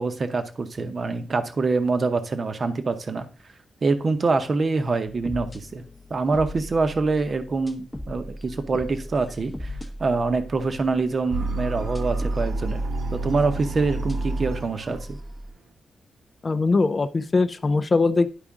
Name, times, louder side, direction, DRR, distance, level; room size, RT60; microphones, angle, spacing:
voice 1, 0.0-3.3 3.8-5.8 6.1-12.8 13.1-15.2, right 3 dB, 40° right, 9 dB, 0.8 m, -25 dB
sound 1, 5.1-11.2 11.9-13.7 14.1-14.2 14.9-15.5, equal, 5° left, 0.8 m, -39 dB
sound 2, 11.3-15.1, right 2 dB, 75° right, 1.1 m, -28 dB
voice 2, 16.4-18.3, left 3 dB, 30° left, 10 dB, 0.4 m, -21 dB
10.0 x 4.9 x 3.6 m, 0.38 s
wide cardioid pair, 145°, 0 cm